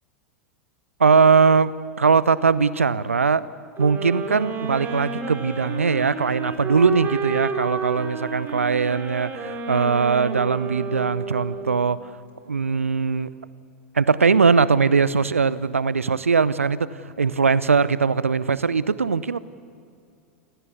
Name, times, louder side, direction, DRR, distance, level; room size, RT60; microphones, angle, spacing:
voice 1, 1.0-3.4 3.8-12.1 12.5-13.3 13.9-19.4, right 5 dB, 80° right, 18 dB, 0.8 m, -20 dB
sound 1, 3.8-12.0, right 5 dB, 30° right, 3.3 m, -31 dB
27.5 x 17.0 x 8.5 m, 2.4 s
figure-of-eight pair, 90°, 7 cm